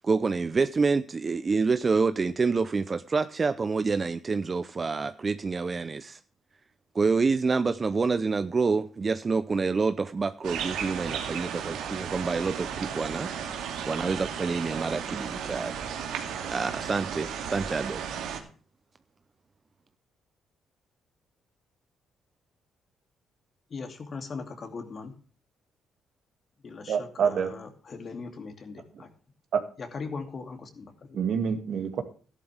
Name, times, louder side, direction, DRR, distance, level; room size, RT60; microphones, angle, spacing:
voice 1, 0.0-6.2 6.9-13.3 13.9-15.8 16.5-18.0, right 4 dB, 35° right, 12 dB, 0.6 m, -27 dB
sound 1, 10.4-18.4, right 7 dB, 85° right, 2.3 m, -34 dB
voice 2, 23.7-25.2 26.6-29.1 29.8-31.2, left 4 dB, 45° left, 6 dB, 2.5 m, -39 dB
voice 3, 26.9-27.5 29.5-29.6 31.1-32.0, right 7 dB, 65° right, 7 dB, 2.1 m, -26 dB
13.5 x 11.5 x 3.4 m, 0.39 s
cardioid pair, 90°, 0 cm